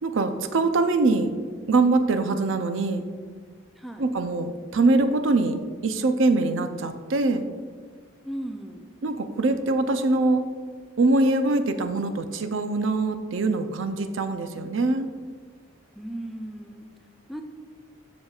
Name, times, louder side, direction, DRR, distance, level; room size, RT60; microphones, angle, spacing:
voice 1, 0.0-1.3 1.7-3.0 4.0-5.6 5.8-7.5 9.0-10.4 11.0-15.1, right 3 dB, 80° right, 9 dB, 0.5 m, -23 dB
voice 2, 3.8-4.1 8.2-8.9 16.0-16.9 17.3-17.4, right 1 dB, ahead, 4 dB, 0.4 m, -36 dB
12.5 x 5.2 x 2.4 m, 1.5 s
head